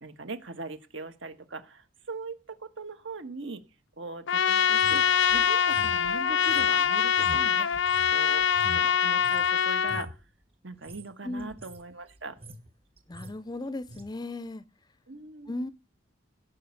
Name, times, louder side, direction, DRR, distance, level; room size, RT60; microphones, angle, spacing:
voice 1, 0.0-3.6 4.0-8.4 8.7-10.2 10.6-12.4 15.1-15.6, right 3 dB, 65° right, 1.5 m, -40 dB
Trumpet, 4.3-10.1, left 7 dB, 70° left, 0.7 m, -24 dB
sound 1, 4.7-9.5 9.8-10.2 10.7-11.1 11.4-11.8 12.2-12.7 13.0-13.4 13.9-14.1, equal, 30° right, 1.5 m, -44 dB
voice 2, 13.1-14.6 15.5-15.7, left 2 dB, 20° left, 0.6 m, -36 dB
16.5 x 5.5 x 7.2 m
head